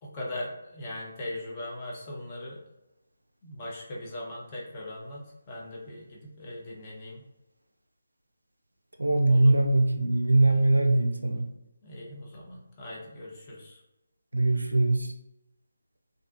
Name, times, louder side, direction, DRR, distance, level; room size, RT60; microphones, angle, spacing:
voice 1, 0.0-2.6 3.4-7.2 9.3-9.5 10.5-10.6 11.8-13.8, left 1 dB, 25° left, -3 dB, 0.5 m, -40 dB
voice 2, 9.0-11.4 14.3-15.1, right 2 dB, 80° right, 4 dB, 0.3 m, -22 dB
2.4 x 2.1 x 2.4 m, 0.91 s
figure-of-eight pair, 150°, 0 cm